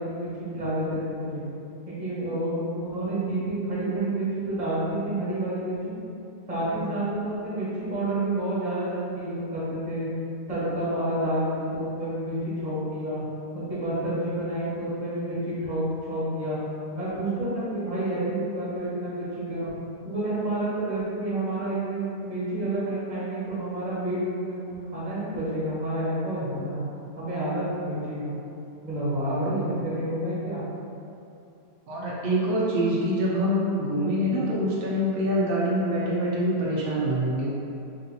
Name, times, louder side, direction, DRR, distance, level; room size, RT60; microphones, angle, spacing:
voice 1, 0.0-1.4 1.8-6.0 6.5-10.1 10.5-13.2 13.5-16.6 16.9-19.7 20.0-24.6 24.9-26.8 27.2-28.3 28.8-30.6, right 1 dB, 30° right, -10 dB, 1.3 m, -29 dB
voice 2, 31.9-37.5, equal, 80° right, -6 dB, 0.5 m, -25 dB
3.6 x 2.7 x 4.0 m, 2.7 s
omnidirectional pair, 1.7 m